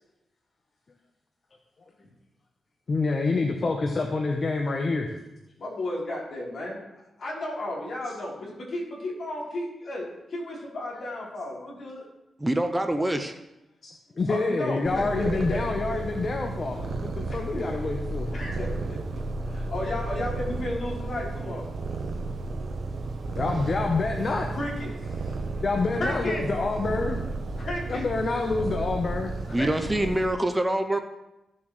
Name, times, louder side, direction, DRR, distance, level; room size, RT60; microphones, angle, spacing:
voice 1, 2.9-5.1 13.8-18.3 23.4-24.5 25.6-27.2 27.9-29.3, left 3 dB, 40° left, 2 dB, 0.9 m, -27 dB
voice 2, 5.6-6.8 7.2-12.1 14.1-15.9 17.3-17.6 18.3-19.0 19.5-21.7 24.5-24.9 26.0-26.4 27.6-28.0 29.6-29.9, left 1 dB, 60° left, -5 dB, 3.7 m, -33 dB
voice 3, 12.4-13.3 29.5-31.0, right 1 dB, 10° right, 7 dB, 0.5 m, -25 dB
Purr, 14.8-30.3, right 2 dB, 60° right, 0.9 m, -33 dB
15.0 x 7.3 x 3.2 m, 0.93 s
wide cardioid pair, 130°, 0 cm